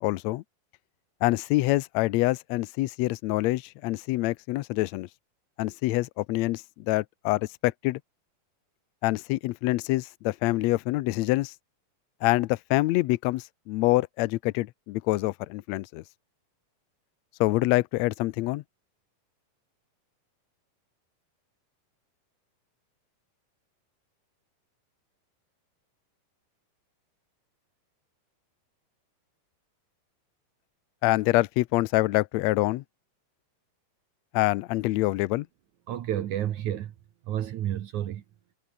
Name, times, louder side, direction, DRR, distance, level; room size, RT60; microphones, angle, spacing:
voice 1, 0.0-0.4 1.2-5.1 5.6-8.0 9.0-11.5 12.2-16.0 17.4-18.6 31.0-32.8 34.3-35.5, left 19 dB, 80° left, 1.6 m, -26 dB
voice 2, 35.9-36.9 37.3-38.2, right 11 dB, 70° right, 2.6 m, -30 dB
omnidirectional pair, 3.8 m